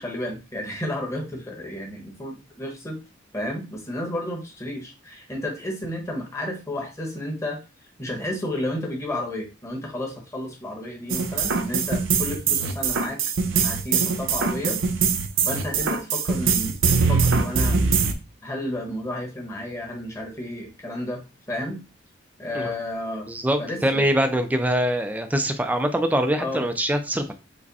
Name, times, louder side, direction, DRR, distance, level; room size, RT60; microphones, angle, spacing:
voice 1, 0.0-3.0 3.3-7.6 8.0-13.2 13.6-14.8 15.5-17.8 18.4-21.2 21.5-21.8 22.4-23.3 23.6-24.1 26.4-26.6, left 1 dB, 15° left, 1 dB, 1.2 m, -32 dB
sound 1, 11.1-18.1, right 5 dB, 80° right, 0.7 m, -22 dB
voice 2, 23.3-27.3, equal, 10° right, 6 dB, 0.5 m, -23 dB
5.0 x 2.2 x 4.1 m, 0.29 s
head